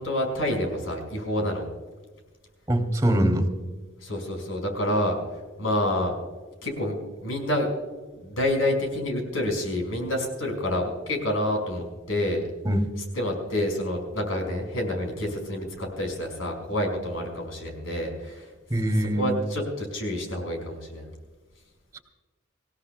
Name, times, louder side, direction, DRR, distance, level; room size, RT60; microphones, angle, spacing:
voice 1, 0.0-1.6 4.0-5.2 5.6-6.1 6.6-6.9 7.2-7.7 8.2-12.5 13.2-18.5 19.0-21.1, left 1 dB, 90° left, 2 dB, 5.3 m, -28 dB
voice 2, 2.7-3.5 12.6-12.9 18.7-19.4, right 1 dB, 15° right, 5 dB, 2.6 m, -23 dB
26.5 x 16.5 x 2.3 m, 1.3 s
head